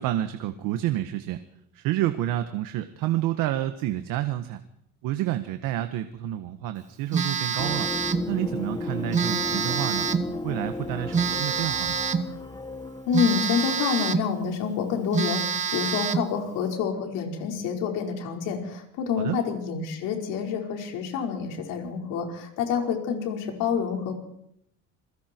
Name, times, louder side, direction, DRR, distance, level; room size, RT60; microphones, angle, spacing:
voice 1, 0.0-1.4 1.7-4.6 5.0-7.9 8.3-10.1 10.4-12.0 19.1-19.4, right 13 dB, 85° right, 8 dB, 1.6 m, -29 dB
Telephone, 7.1-8.3 9.1-10.3 11.1-12.3 13.1-14.3 14.7-14.8 15.1-16.3, right 6 dB, 20° right, 1.1 m, -27 dB
sound 1, 7.6-13.3, left 2 dB, 15° left, 1.4 m, -34 dB
voice 2, 13.1-24.1, left 6 dB, 75° left, 2 dB, 5.1 m, -28 dB
28.5 x 22.0 x 4.6 m, 0.74 s
cardioid pair, 175°, 32 cm